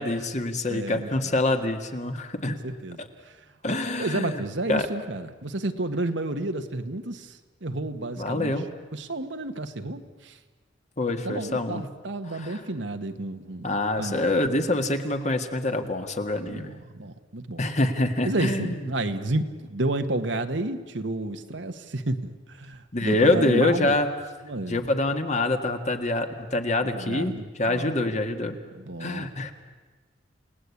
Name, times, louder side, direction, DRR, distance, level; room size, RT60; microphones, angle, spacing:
voice 1, 0.0-2.6 3.0-3.1 3.6-4.9 8.2-8.7 11.0-11.9 12.3-12.6 13.6-16.7 17.6-18.9 22.9-24.1 24.7-28.6 29.0-29.5, left 2 dB, 40° left, 6 dB, 1.8 m, -26 dB
voice 2, 0.7-1.3 2.5-3.0 4.0-8.5 8.9-10.4 11.2-13.7 14.0-14.2 16.5-17.7 18.2-24.0 24.4-24.9 26.9-28.1 28.8-29.3, right 2 dB, 75° right, 7 dB, 1.6 m, -31 dB
29.5 x 18.5 x 8.5 m, 1.3 s
head